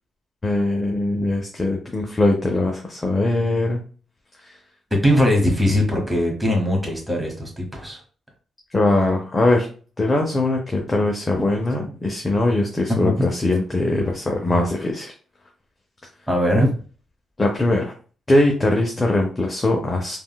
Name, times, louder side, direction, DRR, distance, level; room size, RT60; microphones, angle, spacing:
voice 1, 0.4-3.8 4.4-4.6 8.7-9.7 10.0-15.1 17.4-17.9 18.3-20.2, left 2 dB, 25° left, 1 dB, 0.6 m, -21 dB
voice 2, 4.9-8.0 8.9-9.1 11.4-11.5 12.9-13.3 16.3-16.7, left 1 dB, 5° right, 0 dB, 1.1 m, -20 dB
3.5 x 2.2 x 2.3 m, 0.39 s
cardioid pair, 90°, 0 cm